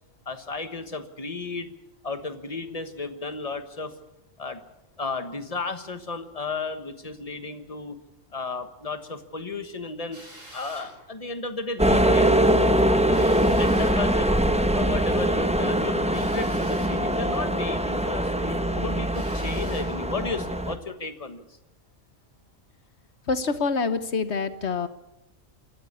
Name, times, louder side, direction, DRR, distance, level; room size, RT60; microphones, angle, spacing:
voice 1, 0.2-1.7 2.0-3.9 4.4-4.6 5.0-8.0 8.3-10.2 10.5-12.3 13.1-14.4 14.7-21.4, left 4 dB, 30° left, 9 dB, 1.4 m, -34 dB
Drill, 10.1-10.9 13.1-14.0 16.1-17.0 19.1-19.9, right 1 dB, 80° right, 6.6 m, -46 dB
sound 1, 11.8-20.8, right 1 dB, 5° right, 1.0 m, -23 dB
voice 2, 23.3-24.9, left 4 dB, 60° left, 12 dB, 1.5 m, -26 dB
24.5 x 13.5 x 8.4 m, 0.91 s
omnidirectional pair, 1.3 m